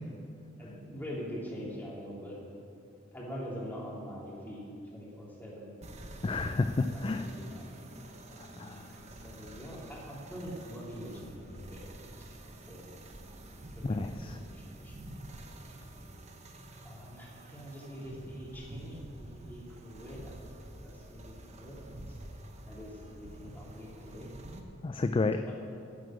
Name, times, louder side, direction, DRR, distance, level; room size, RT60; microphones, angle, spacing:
voice 1, 0.6-2.4 3.1-4.6 4.9-5.7 6.8-7.7 8.3-13.1 13.7-14.0 14.4-15.5 16.8-24.3 25.4-25.5, equal, 10° left, -5 dB, 3.0 m, -44 dB
sound 1, 5.8-24.6, right 1 dB, 35° right, 1.0 m, -48 dB
voice 2, 6.2-7.2 8.6-8.9 13.8-14.4 24.8-25.5, left 3 dB, 25° left, 8 dB, 0.3 m, -31 dB
10.0 x 7.7 x 8.9 m, 2.6 s
head